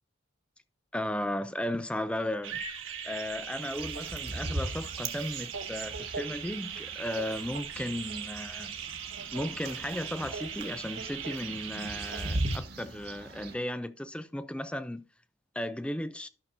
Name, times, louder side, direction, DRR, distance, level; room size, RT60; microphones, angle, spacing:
voice 1, 0.9-2.6 3.0-8.8 9.3-15.1 15.5-16.3, left 1 dB, 5° left, 0.5 m, -35 dB
sound 1, 2.4-12.6, right 7 dB, 70° right, 1.7 m, -39 dB
sound 2, 3.6-13.5, right 1 dB, 50° right, 1.6 m, -39 dB
12.5 x 6.3 x 2.6 m
head